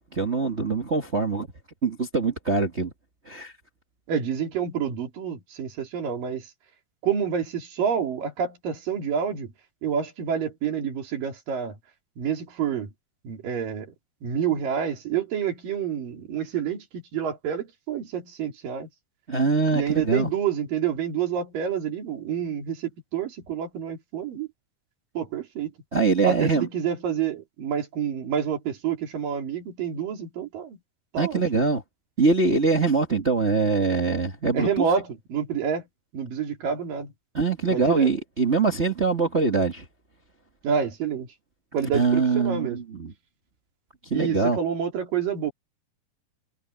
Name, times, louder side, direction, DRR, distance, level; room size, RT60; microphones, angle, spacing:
voice 1, 0.1-1.5 1.8-2.9 3.2-3.5 19.3-20.3 25.9-26.7 31.2-31.8 32.2-34.8 37.3-39.8 41.9-43.1 44.0-44.6, right 4 dB, 35° right, 1.1 m, -23 dB
voice 2, 4.1-6.5 7.0-9.5 9.8-11.8 12.2-12.9 13.2-13.9 14.2-18.9 19.7-24.5 25.1-25.7 26.2-30.8 31.1-31.6 34.5-35.9 36.1-37.1 37.7-38.1 40.6-41.3 41.7-42.8 44.1-45.5, right 7 dB, 80° right, 4.7 m, -28 dB
omnidirectional pair, 3.9 m